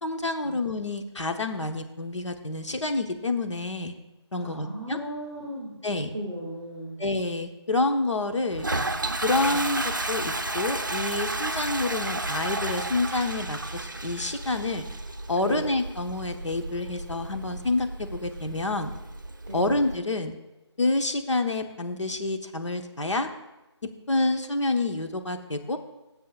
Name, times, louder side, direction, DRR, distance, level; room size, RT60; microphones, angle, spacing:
voice 1, 0.0-3.9 4.3-5.0 5.8-6.1 7.0-8.7 9.2-14.9 15.3-18.9 19.5-20.3 20.8-23.3 23.8-25.8, left 2 dB, 80° left, 6 dB, 1.1 m, -28 dB
voice 2, 4.4-5.7 6.1-7.0 9.4-9.5 15.4-15.6 19.5-19.7, equal, 10° left, -9 dB, 1.1 m, -36 dB
Toilet flush, 8.5-20.0, right 2 dB, 45° right, 0.6 m, -32 dB
17.0 x 7.5 x 2.4 m, 1.0 s
figure-of-eight pair, 180°, 15 cm